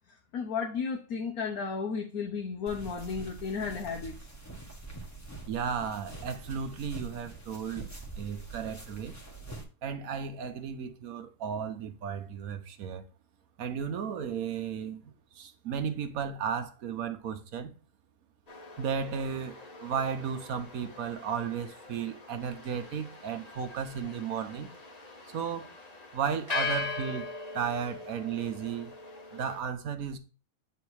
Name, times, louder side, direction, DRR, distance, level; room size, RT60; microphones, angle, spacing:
voice 1, 0.1-4.2, left 5 dB, 80° left, 1.4 m, -34 dB
sound 1, 2.7-9.6, right 3 dB, 10° left, 1.2 m, -45 dB
voice 2, 5.5-7.9 8.2-9.2 9.8-13.0 13.6-15.0 15.3-17.7 18.8-24.7 25.3-25.7 26.1-27.3 27.5-28.9 29.3-30.2, right 7 dB, 75° right, 1.3 m, -34 dB
sound 2, 18.5-29.6, left 3 dB, 30° left, 1.0 m, -41 dB
8.2 x 3.5 x 4.7 m
omnidirectional pair, 1.5 m